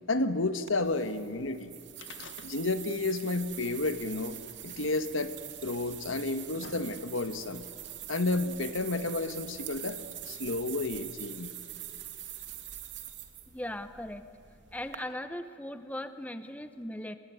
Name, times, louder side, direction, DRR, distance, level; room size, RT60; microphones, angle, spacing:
voice 1, 0.1-1.7 2.2-4.4 4.6-5.3 5.6-7.6 8.1-10.0 10.3-11.5, left 2 dB, 85° left, 11 dB, 1.5 m, -31 dB
sound 1, 0.7-15.0, right 12 dB, 65° right, 2.8 m, -44 dB
sound 2, 1.9-3.0 3.2-3.3 4.3-4.4 5.3-5.4 6.1-7.4 8.3-8.4, left 4 dB, 70° left, 1.7 m, -49 dB
voice 2, 13.5-14.2 14.7-17.2, left 1 dB, 5° left, 10 dB, 0.9 m, -38 dB
29.0 x 21.0 x 9.4 m, 2.6 s
head